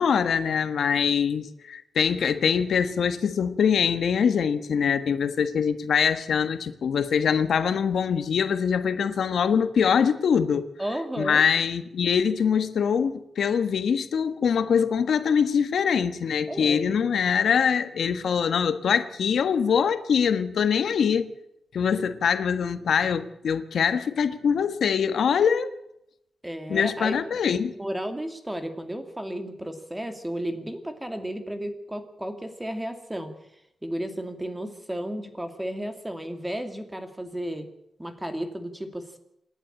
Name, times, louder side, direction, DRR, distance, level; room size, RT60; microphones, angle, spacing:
voice 1, 0.0-10.7 11.2-21.3 21.7-25.7 26.7-27.7, left 7 dB, 80° left, 1.4 m, -23 dB
voice 2, 10.8-11.4 16.5-17.0 26.4-27.2 27.7-33.3 33.8-37.7 38.0-39.2, right 1 dB, 10° right, 2.4 m, -33 dB
27.5 x 11.0 x 8.8 m
wide cardioid pair, 145°, 0 cm